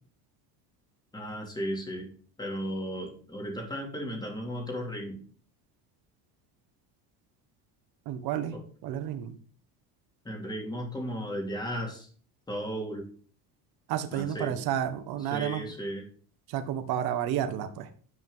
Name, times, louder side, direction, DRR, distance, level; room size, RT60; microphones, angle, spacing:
voice 1, 1.1-2.1 2.4-5.2 8.5-8.6 10.2-12.1 12.5-13.1 14.1-14.5 15.3-16.0, equal, 10° left, 1 dB, 3.2 m, -35 dB
voice 2, 8.0-8.6 8.8-9.4 13.9-15.6 16.5-17.9, right 10 dB, 65° right, 8 dB, 1.4 m, -31 dB
10.5 x 5.3 x 5.6 m, 0.43 s
cardioid pair, 125°, 40 cm